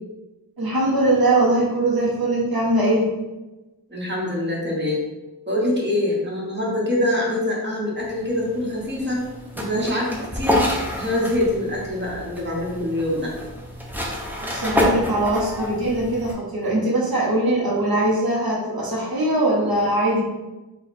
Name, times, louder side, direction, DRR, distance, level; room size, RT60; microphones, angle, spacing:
voice 1, 0.6-3.1 14.5-20.2, right 1 dB, 80° right, -4 dB, 0.9 m, -21 dB
voice 2, 3.9-5.0 5.5-9.2 9.5-10.6 10.9-13.3, left 1 dB, 30° right, -4 dB, 1.3 m, -24 dB
sound 1, 8.0-16.3, left 1 dB, 5° right, 0.8 m, -28 dB
4.1 x 2.4 x 4.1 m, 1.1 s
wide cardioid pair, 60°, 36 cm